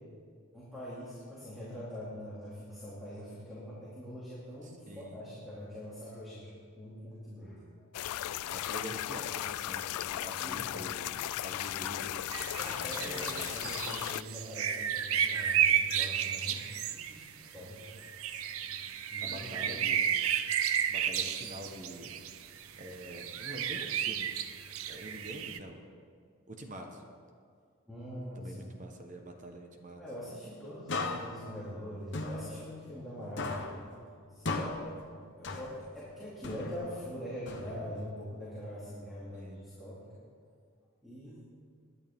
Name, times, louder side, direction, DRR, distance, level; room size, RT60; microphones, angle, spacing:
voice 1, 0.5-6.5 6.8-7.9 10.4-10.7 11.2-11.3 12.5-17.8 19.1-19.8 27.9-28.6 30.0-33.9 34.3-34.9 35.4-40.2 41.0-41.4, equal, ahead, -10 dB, 2.6 m, -43 dB
voice 2, 4.6-5.2 8.5-11.1 11.4-12.3 12.9-13.8 18.3-18.9 19.2-20.1 20.9-22.2 22.8-24.3 24.9-25.8 26.5-27.0 28.3-30.0 39.3-39.6, equal, 35° right, 3 dB, 1.2 m, -46 dB
sound 1, 7.9-14.2, left 13 dB, 85° left, 0.3 m, -36 dB
sound 2, 12.3-25.6, right 9 dB, 70° right, 0.6 m, -33 dB
sound 3, 30.9-33.1 33.4-36.0 36.4-38.1, left 3 dB, 50° left, 1.1 m, -38 dB
21.5 x 10.5 x 3.7 m, 2.2 s
head